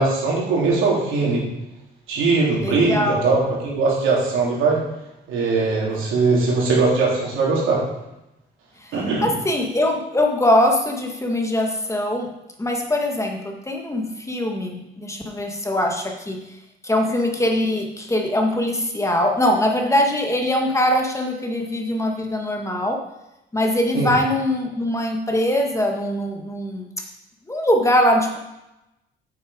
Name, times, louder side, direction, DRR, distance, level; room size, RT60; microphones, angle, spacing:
voice 1, 0.0-1.4 2.1-4.8 5.3-7.8 8.9-9.3 23.9-24.1, right 3 dB, 85° right, -4 dB, 3.5 m, -20 dB
voice 2, 2.5-3.2 8.8-8.9 9.2-12.3 12.6-16.4 16.8-23.0 23.5-26.9 27.5-28.4, left 1 dB, 15° left, 2 dB, 1.6 m, -22 dB
8.7 x 7.1 x 5.0 m, 0.92 s
cardioid pair, 90°, 20 cm